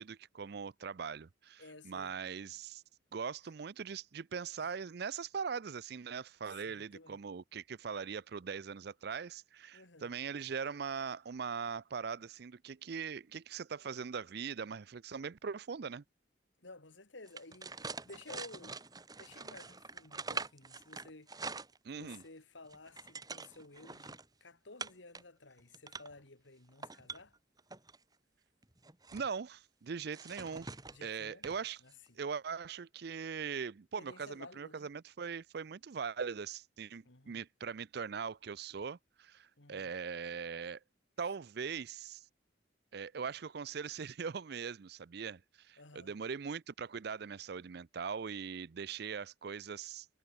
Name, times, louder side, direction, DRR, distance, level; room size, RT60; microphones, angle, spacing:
voice 1, 0.0-2.8 3.1-16.0 21.8-22.2 29.1-30.7 31.0-31.8 32.2-40.8 41.2-42.3 42.9-50.1, right 6 dB, 55° right, 0.5 m, -41 dB
voice 2, 1.6-2.1 4.6-4.7 6.5-7.2 9.7-10.1 16.6-18.8 19.2-21.4 21.9-27.4 30.9-31.5 31.8-31.9 34.0-34.9 37.0-37.4 39.6-40.0 45.8-46.1, left 2 dB, 70° left, 2.6 m, -54 dB
sound 1, 17.3-22.3 22.6-24.3 24.8-25.2 25.6-26.2 26.7-28.0 28.6-29.3 30.1-31.0 31.4-31.6 31.9-32.1, right 4 dB, 20° right, 2.9 m, -45 dB
head